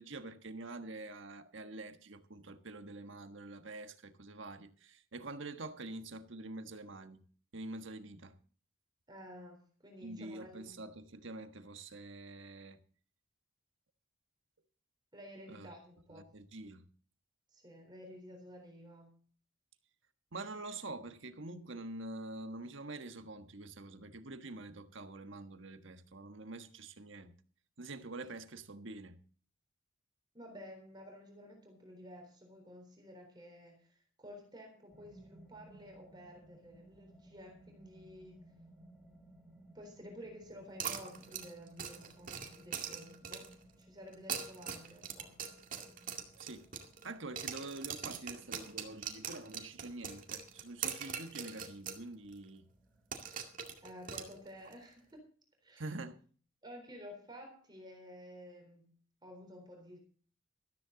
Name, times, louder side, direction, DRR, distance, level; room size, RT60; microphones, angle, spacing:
voice 1, 0.0-7.2 7.5-8.4 10.0-12.8 15.5-15.7 16.1-16.9 20.3-27.4 27.8-29.2 46.4-46.7 47.0-52.6 55.8-56.2, right 2 dB, 70° right, 1.4 m, -46 dB
voice 2, 9.1-10.8 15.1-16.3 17.5-19.1 30.3-38.4 39.7-43.5 43.8-45.4 53.8-55.2 55.6-55.9 56.6-58.9 59.2-60.0, equal, 20° right, 3.9 m, -52 dB
sound 1, 34.9-54.3, right 1 dB, 5° right, 2.6 m, -62 dB
sound 2, 40.8-43.6 44.1-47.1 47.4-52.0 52.3-52.4 53.1-54.7, right 7 dB, 40° right, 2.1 m, -42 dB
14.0 x 13.5 x 3.9 m
head